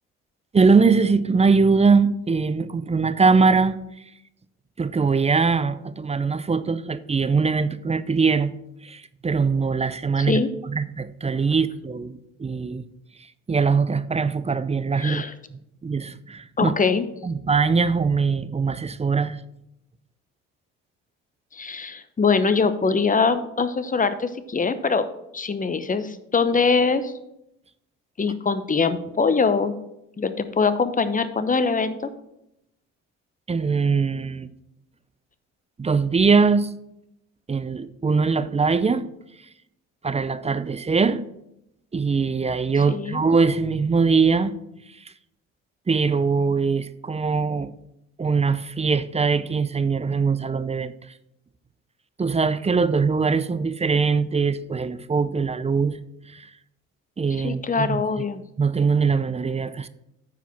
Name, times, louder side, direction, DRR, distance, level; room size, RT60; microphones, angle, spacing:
voice 1, 0.5-3.8 4.8-8.5 8.8-12.8 13.5-15.2 15.5-16.7 17.2-19.4 33.5-34.5 35.8-36.7 37.5-39.1 40.0-41.2 41.9-44.5 45.9-47.7 48.2-50.9 52.2-56.0 56.3-56.5 57.2-58.2 58.6-59.9, right 4 dB, 20° right, 0.5 m, -22 dB
voice 2, 10.2-10.5 15.0-15.3 16.6-17.1 21.5-25.1 25.3-27.1 28.2-29.7 30.2-32.1 42.9-43.2 57.4-58.4, left 4 dB, 25° left, 0.9 m, -23 dB
9.2 x 4.8 x 5.9 m
supercardioid pair, 65°, 34 cm